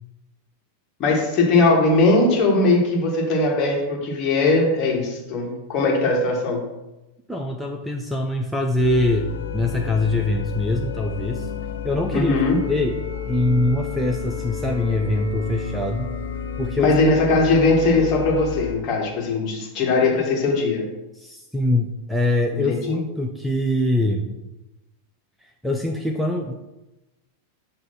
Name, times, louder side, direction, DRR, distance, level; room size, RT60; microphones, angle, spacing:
voice 1, 1.0-6.7 12.1-12.6 16.8-20.9 22.5-23.0, left 2 dB, 35° left, -1 dB, 1.6 m, -20 dB
voice 2, 7.3-9.3 9.5-11.5 11.8-12.3 12.7-13.0 13.3-16.1 16.6-16.9 21.1-24.4 25.6-26.5, left 1 dB, 5° right, 2 dB, 0.5 m, -23 dB
Organ Ambience Calm A, 8.8-18.8, left 7 dB, 60° left, 0.6 m, -31 dB
7.5 x 2.7 x 5.8 m, 1.0 s
figure-of-eight pair, 90°, 0 cm